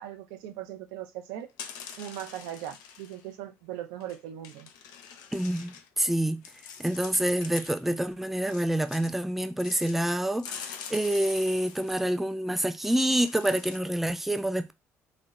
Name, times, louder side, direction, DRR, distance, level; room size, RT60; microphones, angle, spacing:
voice 1, 0.0-1.5 2.0-4.7, right 11 dB, 80° right, 0.4 m, -39 dB
sound 1, 1.4-3.3 4.0-4.2 4.4-5.9 6.4-8.1 8.5-9.1 9.6-12.1 12.8-13.8, left 7 dB, 70° left, 0.4 m, -45 dB
voice 2, 5.3-6.4 6.8-14.7, right 1 dB, 5° right, 0.3 m, -27 dB
2.7 x 2.0 x 2.3 m
hypercardioid pair, 55°, 7 cm